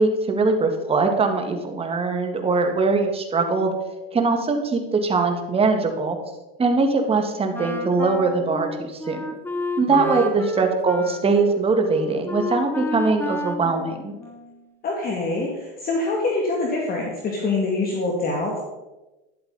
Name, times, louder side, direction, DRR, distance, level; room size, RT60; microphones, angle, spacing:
voice 1, 0.0-3.7 4.1-6.2 6.6-9.2 9.8-14.1, right 3 dB, 20° right, 4 dB, 1.9 m, -21 dB
Wind instrument woodwind instrument, 7.5-14.7, left 2 dB, 5° left, 0.8 m, -31 dB
voice 2, 14.8-18.6, left 3 dB, 30° left, -1 dB, 2.3 m, -25 dB
12.5 x 10.5 x 4.1 m, 1.1 s
supercardioid pair, 130°, 30 cm